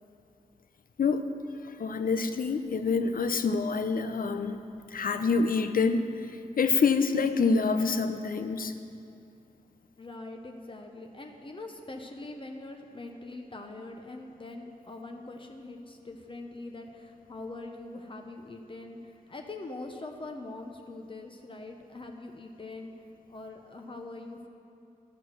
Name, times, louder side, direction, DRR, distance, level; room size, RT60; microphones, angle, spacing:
voice 1, 1.6-4.6 4.9-6.1 6.6-8.7, left 4 dB, 70° left, 9 dB, 0.6 m, -26 dB
voice 2, 10.0-22.9 23.3-24.5, left 2 dB, 35° left, 3 dB, 0.8 m, -43 dB
13.0 x 6.4 x 6.2 m, 2.6 s
wide cardioid pair, 85°, 15 cm